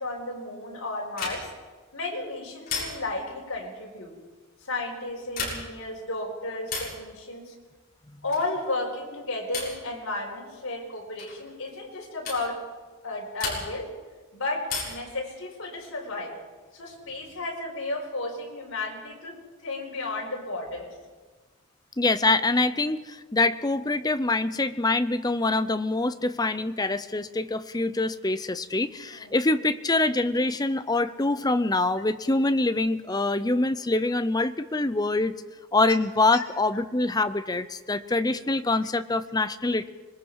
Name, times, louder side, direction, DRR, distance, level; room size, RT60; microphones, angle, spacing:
voice 1, 0.0-1.5 1.9-4.1 4.6-7.5 8.2-12.6 13.0-13.9 14.3-16.4 16.7-20.9 29.1-29.4 36.3-36.4, left 2 dB, 75° left, -2 dB, 4.6 m, -33 dB
sound 1, 1.2-1.7 2.7-3.3 5.2-5.9 6.7-7.1 8.3-8.6 9.5-9.9 11.2-11.4 12.3-12.5 13.4-13.9 14.7-15.2 16.6-17.3, left 4 dB, 45° left, 6.8 m, -34 dB
voice 2, 22.0-35.3 35.7-39.9, left 2 dB, 20° left, 12 dB, 0.7 m, -25 dB
26.0 x 21.5 x 4.8 m, 1.3 s
head